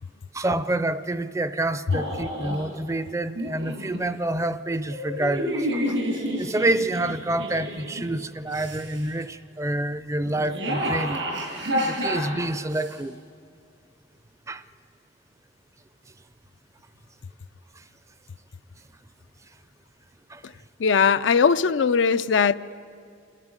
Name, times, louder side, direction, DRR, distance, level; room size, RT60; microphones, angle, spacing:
voice 1, 0.3-6.0 6.4-11.3 11.8-13.2 14.5-14.6 20.3-20.4, right 2 dB, 15° right, 0.5 m, -28 dB
sound 1, 1.9-2.6 3.4-4.0 4.9-8.0 8.5-9.1 10.3-12.9, equal, 85° right, 6.5 m, -29 dB
voice 2, 20.8-22.6, left 6 dB, 85° left, 0.5 m, -19 dB
28.5 x 11.0 x 9.7 m
head